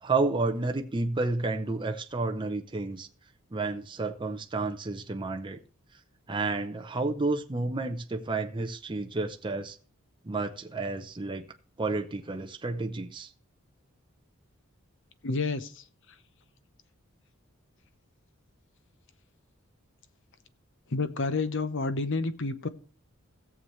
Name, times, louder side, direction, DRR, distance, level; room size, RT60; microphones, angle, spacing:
voice 1, 0.0-3.1 3.5-5.6 6.3-9.8 10.2-11.4 11.8-13.3, right 3 dB, 25° right, 0.7 m, -31 dB
voice 2, 15.2-15.8 20.9-22.7, left 3 dB, 60° left, 0.8 m, -29 dB
17.0 x 7.1 x 3.2 m
head